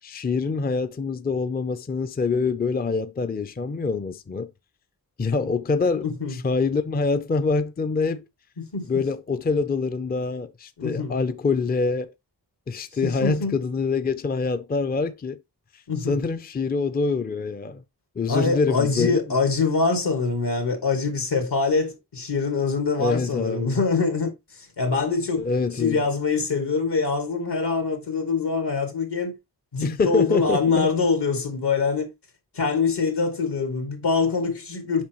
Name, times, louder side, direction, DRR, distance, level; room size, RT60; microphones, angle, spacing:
voice 1, 0.0-4.5 5.2-8.3 8.9-12.1 12.7-15.4 16.1-17.8 18.2-19.2 23.0-23.8 25.4-26.0 29.8-30.9, left 4 dB, 25° left, 0.5 m, -25 dB
voice 2, 6.0-6.4 8.6-8.9 10.8-11.2 13.0-13.6 15.9-16.2 18.3-25.5 25.7-29.3 29.7-32.1 32.5-35.0, left 4 dB, 80° left, 2.5 m, -24 dB
7.3 x 5.3 x 3.0 m
wide cardioid pair, 70°, 40 cm